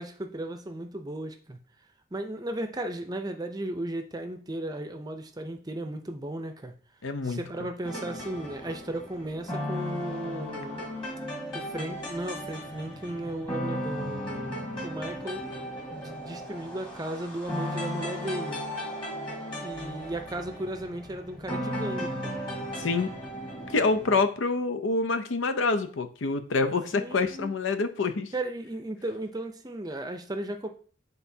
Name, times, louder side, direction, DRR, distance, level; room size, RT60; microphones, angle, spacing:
voice 1, 0.0-1.6 2.1-6.7 7.2-10.9 11.5-15.5 15.9-18.6 19.6-22.3 26.9-27.5 28.3-30.7, right 1 dB, 20° right, 6 dB, 0.5 m, -35 dB
voice 2, 7.0-7.4 22.8-23.1 23.7-28.3, left 3 dB, 80° left, 10 dB, 0.6 m, -26 dB
sound 1, 7.8-24.2, equal, 25° left, 1.8 m, -36 dB
9.1 x 3.9 x 2.8 m, 0.43 s
head